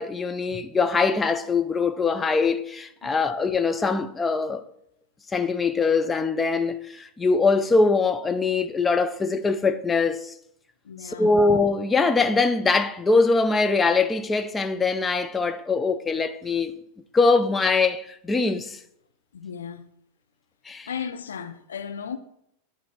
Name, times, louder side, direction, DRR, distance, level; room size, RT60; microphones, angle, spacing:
voice 1, 0.0-4.6 5.3-10.3 11.0-16.7 17.1-18.8 20.7-20.9, left 4 dB, 15° left, 0.5 m, -22 dB
voice 2, 10.9-11.3 19.3-19.9 20.9-22.2, left 7 dB, 70° left, 0.5 m, -35 dB
9.6 x 4.4 x 4.3 m
figure-of-eight pair, 90°, 0 cm